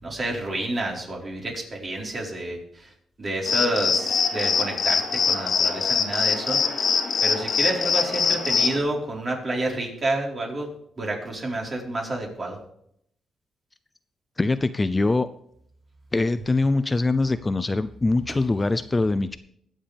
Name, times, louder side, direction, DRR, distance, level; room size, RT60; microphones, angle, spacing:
voice 1, 0.0-2.9 3.2-6.6 7.2-10.7 11.0-12.6, right 2 dB, 40° right, -1 dB, 4.3 m, -29 dB
sound 1, 3.5-8.8, left 6 dB, 55° left, 1.8 m, -23 dB
voice 2, 14.4-15.3 16.1-19.4, left 2 dB, 25° left, 12 dB, 0.5 m, -23 dB
21.5 x 7.4 x 3.5 m, 0.71 s
cardioid pair, 80°, 0 cm